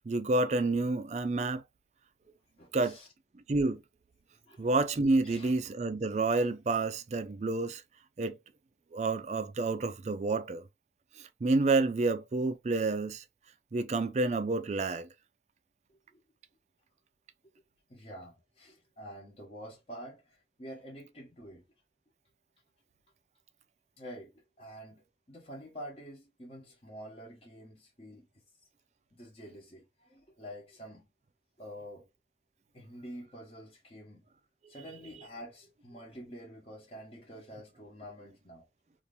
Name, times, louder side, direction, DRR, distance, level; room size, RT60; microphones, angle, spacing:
voice 1, 0.1-1.6 2.7-3.0 3.3-3.8 4.6-7.8 8.2-8.4 8.9-10.6 11.2-13.2 13.7-15.1, right 3 dB, 40° right, 0.4 m, -29 dB
voice 2, 2.6-3.1 4.5-4.7 5.2-5.5 15.9-16.2 17.9-21.6 24.0-28.3 29.1-31.1 31.6-32.0 32.7-34.3 34.7-38.6, equal, 35° left, 0.9 m, -48 dB
2.8 x 2.5 x 3.4 m
head